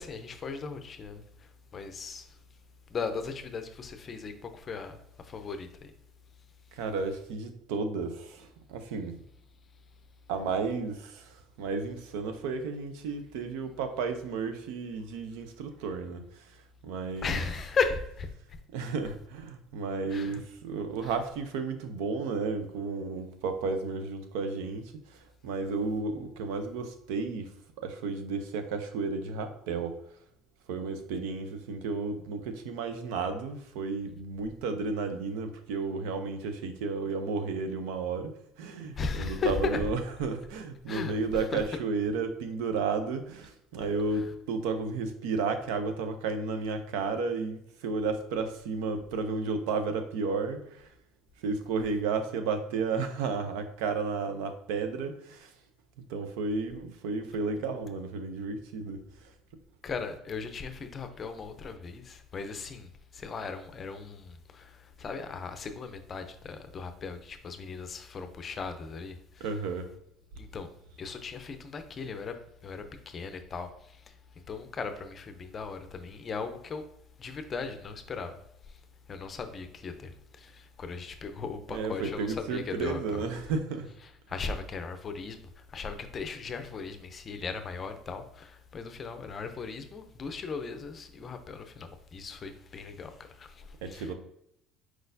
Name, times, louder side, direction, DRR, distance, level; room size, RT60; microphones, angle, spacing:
voice 1, 0.0-2.4 2.9-5.9 17.2-18.3 20.1-20.4 21.0-21.1 39.0-39.8 40.9-41.1 41.5-41.6 44.1-44.3 59.8-69.5 70.4-70.7 71.0-72.4 72.6-74.2 74.5-76.8 77.2-78.8 79.1-83.2 84.3-94.1, left 5 dB, 30° left, 0.5 m, -37 dB
voice 2, 6.7-9.2 10.3-16.5 16.8-17.4 18.7-30.0 30.7-38.3 38.6-50.9 51.4-55.5 56.1-59.3 69.4-69.9 81.7-83.9 93.8-94.1, right 4 dB, 90° right, 0.6 m, -33 dB
4.6 x 4.1 x 2.6 m
cardioid pair, 140°, 0 cm